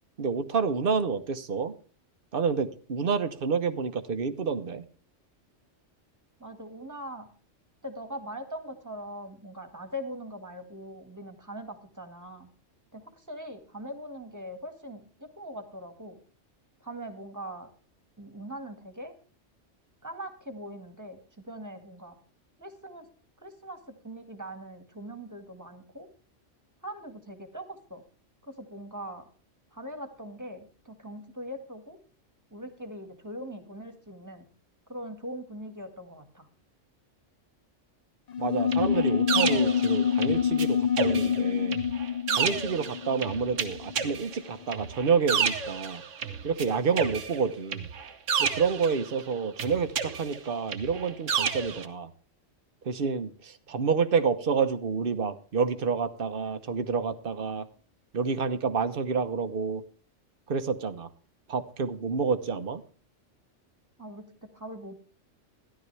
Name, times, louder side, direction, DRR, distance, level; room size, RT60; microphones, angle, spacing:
voice 1, 0.2-1.7 2.3-4.8 38.4-41.8 42.3-46.0 46.4-47.9 48.4-52.1 52.8-57.7 58.1-59.8 60.5-61.1 61.5-62.8, right 5 dB, 50° right, 10 dB, 1.1 m, -28 dB
voice 2, 6.4-7.3 7.8-12.5 12.9-16.2 16.8-17.7 18.2-19.1 20.0-21.2 21.4-22.2 22.6-23.1 23.4-26.1 26.8-28.0 28.4-29.2 29.7-32.0 32.5-34.5 34.9-36.5 64.0-64.3 64.5-64.9, equal, 15° right, 6 dB, 1.8 m, -41 dB
sound 1, 38.3-44.3, left 8 dB, 45° left, 0.5 m, -27 dB
sound 2, 38.7-40.7 41.0-46.7 47.0-49.2 49.6-51.9, right 7 dB, 80° right, 1.4 m, -31 dB
14.0 x 11.5 x 3.3 m, 0.40 s
omnidirectional pair, 1.3 m